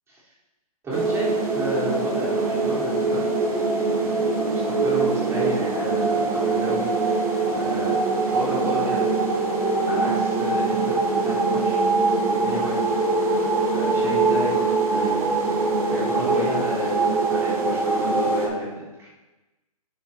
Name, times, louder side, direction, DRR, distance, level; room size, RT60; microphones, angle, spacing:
voice 1, 0.8-4.0 4.5-7.2 7.5-8.0 8.3-9.0 9.9-11.8 12.3-12.8 13.7-15.3 15.9-19.1, equal, 15° right, -8 dB, 3.7 m, -32 dB
sound 1, 0.9-18.5, right 3 dB, 70° right, 3.4 m, -23 dB
12.5 x 9.5 x 2.8 m, 1.1 s
figure-of-eight pair, 130°, 20 cm